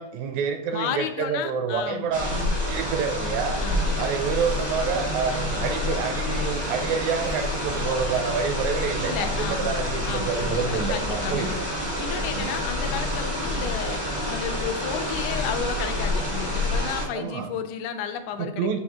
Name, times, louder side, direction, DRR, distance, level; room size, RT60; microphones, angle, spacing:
voice 1, 0.0-3.6 4.0-11.6 12.3-12.5 17.1-17.5 18.4-18.8, right 6 dB, 80° right, 6 dB, 1.8 m, -28 dB
voice 2, 0.7-2.1 3.6-4.1 8.9-9.8 10.0-10.3 10.6-11.6 12.0-18.8, left 8 dB, 85° left, 7 dB, 2.1 m, -32 dB
sound 1, 2.1-17.1, left 1 dB, 25° right, 0.5 m, -28 dB
Train, 3.3-8.3, left 4 dB, 70° left, 1.5 m, -42 dB
7.8 x 2.8 x 4.3 m, 0.76 s
omnidirectional pair, 3.5 m